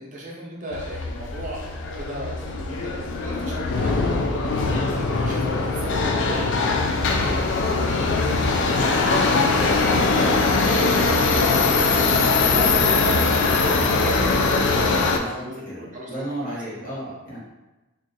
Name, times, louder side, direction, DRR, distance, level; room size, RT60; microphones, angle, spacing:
voice 1, 0.0-4.5 4.9-16.5 16.8-16.9, right 1 dB, 35° right, -4 dB, 0.5 m, -36 dB
Subway metro underground, 0.7-15.2, left 3 dB, 55° left, 0.3 m, -21 dB
sound 1, 4.8-10.1, equal, ahead, 0.6 m, -40 dB
voice 2, 15.0-17.4, right 1 dB, 40° left, -6 dB, 0.9 m, -34 dB
2.5 x 2.3 x 3.9 m, 1.1 s
head